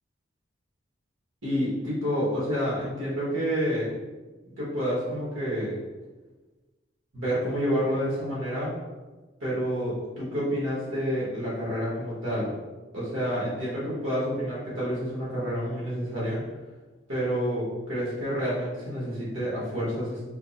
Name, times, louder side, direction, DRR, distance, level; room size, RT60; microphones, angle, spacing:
voice 1, 1.4-3.9 4.6-5.8 7.1-8.7 9.4-12.5 12.9-16.4 17.1-20.3, equal, 80° right, -8 dB, 1.2 m, -29 dB
3.5 x 2.0 x 3.9 m, 1.2 s
head